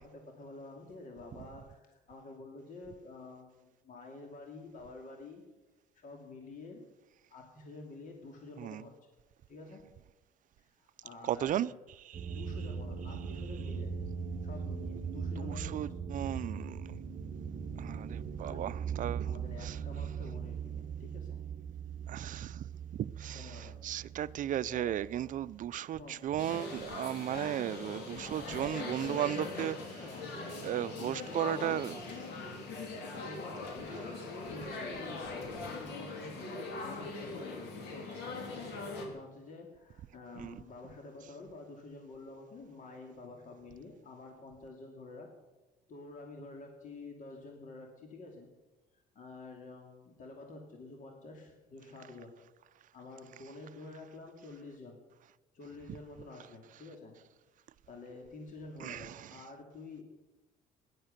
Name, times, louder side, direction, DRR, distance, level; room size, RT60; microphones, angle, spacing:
voice 1, 0.0-5.4 5.9-6.8 7.3-9.1 9.5-9.8 10.6-11.8 12.3-13.9 14.4-15.8 18.4-18.9 19.2-21.4 23.3-23.7 24.6-24.9 25.9-26.2 28.1-28.9 29.9-31.9 33.1-45.3 45.9-48.5 49.1-52.4 52.9-55.0 55.5-57.2 57.9-60.0, left 3 dB, 50° left, 2.7 m, -49 dB
voice 2, 11.2-11.7 12.1-12.4 15.1-16.9 17.8-19.3 19.6-19.8 22.1-22.7 22.9-30.0 30.6-32.0 40.4-40.6 58.8-59.3, right 11 dB, 50° right, 0.5 m, -36 dB
sound 1, 12.1-25.8, right 6 dB, 30° right, 1.0 m, -40 dB
sound 2, 26.4-39.1, left 3 dB, 80° left, 3.2 m, -41 dB
17.5 x 11.5 x 6.7 m
cardioid pair, 110°, 17 cm